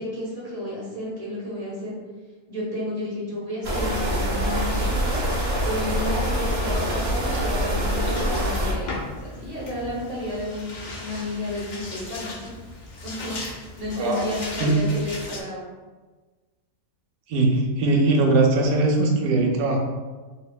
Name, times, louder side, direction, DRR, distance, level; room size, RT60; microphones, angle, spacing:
voice 1, 0.0-2.0 2.5-12.5 13.0-15.7, left 1 dB, 30° right, -6 dB, 0.9 m, -32 dB
sound 1, 3.6-8.7, equal, 50° right, 0.5 m, -24 dB
sound 2, 8.1-15.4, left 2 dB, 65° left, 0.4 m, -37 dB
voice 2, 14.0-14.3 14.6-14.8 17.3-19.8, right 2 dB, 75° right, 1 dB, 1.0 m, -20 dB
4.3 x 2.7 x 2.2 m, 1.3 s
omnidirectional pair, 1.6 m